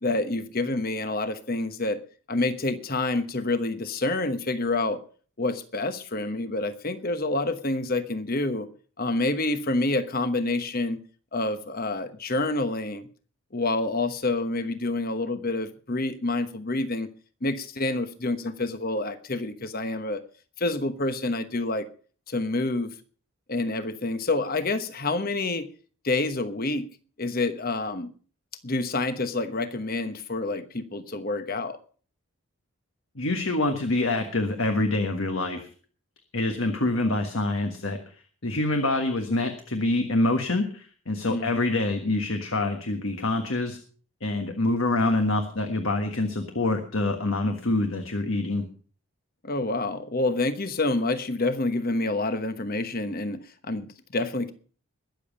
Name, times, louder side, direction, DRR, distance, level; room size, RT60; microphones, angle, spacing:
voice 1, 0.0-2.0 2.3-5.0 5.4-8.7 9.0-11.0 11.3-13.1 13.5-17.1 17.4-20.2 20.6-21.9 22.3-22.9 23.5-25.7 26.0-26.9 27.2-28.1 28.6-31.8 41.3-41.6 49.4-54.5, left 2 dB, 40° left, 1.1 m, -28 dB
voice 2, 33.1-35.7 36.3-38.0 38.4-43.8 44.2-48.7, left 2 dB, 60° left, 1.6 m, -26 dB
21.5 x 7.3 x 5.3 m
head